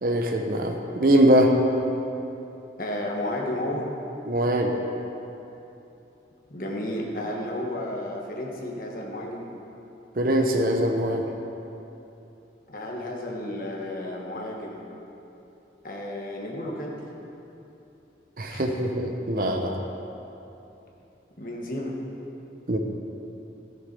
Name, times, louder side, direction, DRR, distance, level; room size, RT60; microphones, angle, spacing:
voice 1, 0.0-1.5 4.3-4.8 10.2-11.2 18.4-19.7 22.7-22.8, right 1 dB, 55° right, 2 dB, 0.8 m, -22 dB
voice 2, 2.8-3.9 6.5-9.4 12.7-14.8 15.8-16.9 18.5-18.7 21.4-21.9, left 1 dB, 50° left, -1 dB, 1.5 m, -32 dB
13.0 x 6.8 x 5.4 m, 2.9 s
head